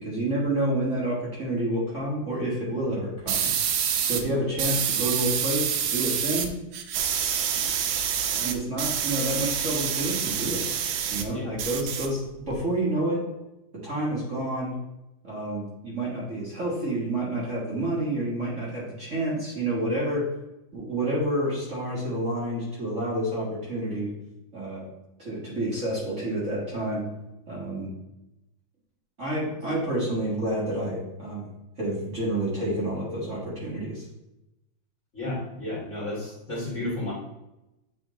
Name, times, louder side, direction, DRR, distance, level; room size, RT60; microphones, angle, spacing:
voice 1, 0.0-3.5 4.0-6.5 7.6-7.7 8.3-10.7 11.1-13.2 13.7-14.7 15.2-20.3 20.7-24.1 24.5-24.9 25.2-27.1 27.5-27.9 29.2-31.4 31.8-34.1, right 1 dB, 40° right, -6 dB, 1.7 m, -29 dB
sound 1, 3.3-4.2 4.6-6.5 6.7-11.3 11.6-12.6, right 8 dB, 75° right, 1.3 m, -27 dB
voice 2, 35.1-37.1, left 1 dB, 35° left, -6 dB, 2.1 m, -32 dB
8.1 x 3.5 x 3.7 m, 0.93 s
omnidirectional pair, 2.3 m